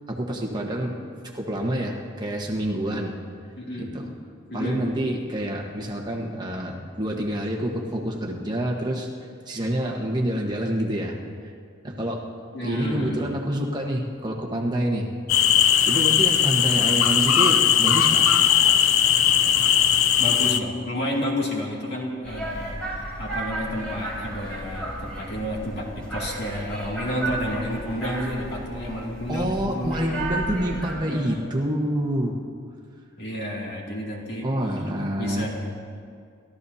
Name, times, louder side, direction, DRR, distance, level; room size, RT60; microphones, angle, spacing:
voice 1, 0.1-3.1 3.8-4.1 4.5-9.1 9.5-11.2 11.4-11.5 11.8-12.2 12.6-15.1 15.9-18.3 29.3-32.5 34.4-35.4, right 1 dB, 20° right, 0 dB, 1.3 m, -27 dB
voice 2, 3.6-3.9 4.5-4.8 12.5-13.3 20.2-30.0 30.9-31.4 33.2-34.5 35.2-35.5, equal, 50° left, -3 dB, 2.5 m, -30 dB
sound 1, 15.3-20.6, left 9 dB, 80° left, 0.6 m, -19 dB
sound 2, 22.2-30.9, right 2 dB, 5° left, 4.5 m, -34 dB
30.0 x 13.5 x 2.8 m, 2.2 s
head